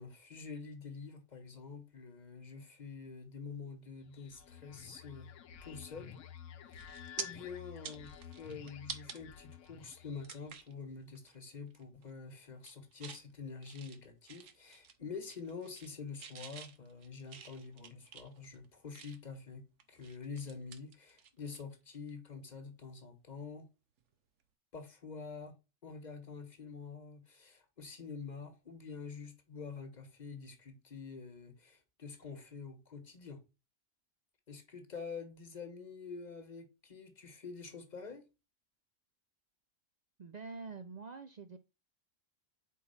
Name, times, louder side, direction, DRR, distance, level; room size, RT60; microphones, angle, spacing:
voice 1, 0.0-5.3 5.6-6.2 6.7-6.9 7.2-23.7 24.7-25.5 25.8-33.4 34.5-38.3, left 5 dB, 35° left, 1.2 m, -47 dB
sound 1, 4.0-10.6, left 8 dB, 80° left, 1.0 m, -52 dB
sound 2, 6.2-6.4 6.7-7.3 7.7-9.2 9.6-9.7 10.2-10.7 11.2-11.4 11.7-12.1 12.5-13.2 13.6-15.0 15.2-15.9 16.2-19.4 19.8-21.6 21.9-22.1 24.0-24.1, right 7 dB, 75° right, 1.1 m, -48 dB
voice 2, 40.2-41.6, right 4 dB, 55° right, 0.5 m, -46 dB
4.6 x 4.1 x 5.5 m
omnidirectional pair, 1.3 m